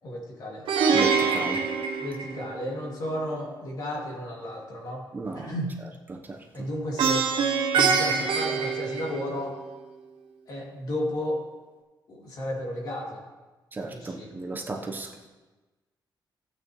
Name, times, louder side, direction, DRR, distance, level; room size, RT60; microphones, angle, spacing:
voice 1, 0.0-0.7 2.0-5.0 5.3-5.8 6.5-7.3 7.7-9.6 10.5-11.4 12.1-13.2 13.9-14.3 14.8-14.9, left 1 dB, 55° left, -2 dB, 2.6 m, -33 dB
Plucked string instrument, 0.7-2.8 7.0-9.6, right 5 dB, 85° right, 1.1 m, -25 dB
voice 2, 0.9-1.6 5.1-5.5 6.1-6.4 13.7-15.3, right 3 dB, 25° right, 1 dB, 1.0 m, -35 dB
15.5 x 8.8 x 3.1 m, 1.2 s
cardioid pair, 150°, 8 cm